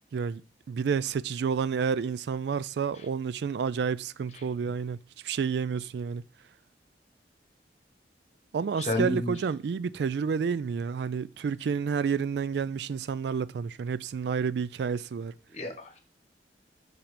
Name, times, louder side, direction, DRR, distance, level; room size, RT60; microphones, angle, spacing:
voice 1, 0.7-5.0 5.2-6.2 8.5-15.3, right 6 dB, 70° right, 0.3 m, -30 dB
voice 2, 8.8-9.3 15.5-16.0, left 1 dB, 40° left, 1.3 m, -31 dB
5.8 x 5.5 x 5.1 m
head